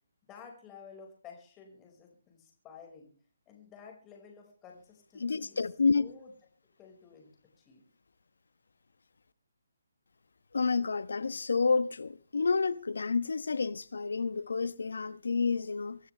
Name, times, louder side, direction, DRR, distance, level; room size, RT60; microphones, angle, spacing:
voice 1, 0.2-3.1 3.5-5.6 6.0-6.3 6.8-7.3 7.6-7.8, left 6 dB, 20° left, 5.3 m, -52 dB
voice 2, 5.2-6.1 10.5-16.0, left 4 dB, 75° left, 1.1 m, -29 dB
25.5 x 13.0 x 3.4 m
figure-of-eight pair, 150°, 0 cm